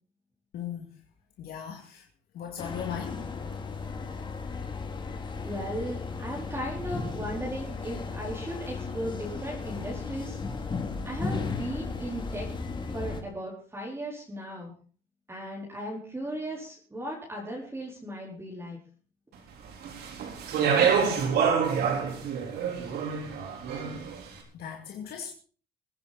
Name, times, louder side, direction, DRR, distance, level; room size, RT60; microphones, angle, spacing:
voice 1, 0.5-0.9 1.4-2.0 2.3-3.3 24.5-25.3, left 8 dB, 65° left, 2.4 m, -37 dB
sound 1, 2.6-13.2, left 4 dB, 30° left, 2.5 m, -35 dB
voice 2, 5.4-10.4 11.0-12.5 12.9-14.7 15.3-18.8, right 1 dB, 15° right, 4.4 m, -36 dB
Speech, 19.8-24.2, right 6 dB, 70° right, 4.0 m, -26 dB
22.0 x 10.0 x 4.2 m
cardioid pair, 110°, 17 cm